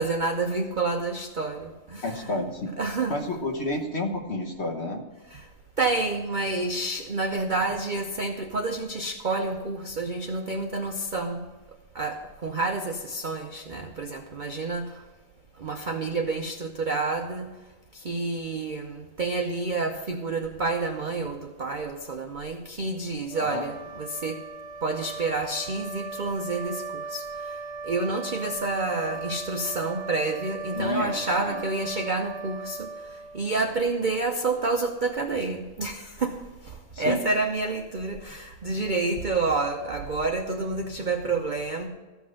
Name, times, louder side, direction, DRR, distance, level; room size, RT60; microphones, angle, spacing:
voice 1, 0.0-2.3 2.8-3.2 5.3-5.4 5.8-11.4 11.9-14.9 15.6-17.5 18.0-24.4 24.8-27.2 27.8-32.9 33.3-36.4 37.0-41.9, right 3 dB, 50° right, 4 dB, 0.6 m, -29 dB
voice 2, 2.0-2.7 3.1-5.0 23.4-23.6 30.8-31.6 36.9-37.2, left 2 dB, 45° left, 3 dB, 1.3 m, -30 dB
sound 1, 23.3-33.9, right 4 dB, 75° right, 1.2 m, -38 dB
14.0 x 5.8 x 6.4 m, 1.2 s
omnidirectional pair, 1.7 m